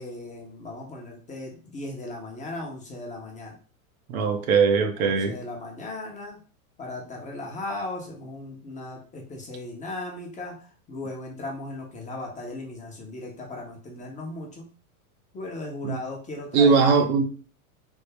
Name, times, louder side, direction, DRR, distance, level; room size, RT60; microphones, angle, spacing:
voice 1, 0.0-3.6 5.0-6.4 6.8-14.7 15.3-17.0, left 2 dB, 15° left, 0 dB, 0.7 m, -37 dB
voice 2, 4.1-5.4 15.8-16.0 16.5-17.3, right 5 dB, 70° right, 5 dB, 0.8 m, -20 dB
3.4 x 2.0 x 3.3 m, 0.39 s
hypercardioid pair, 120°, 43 cm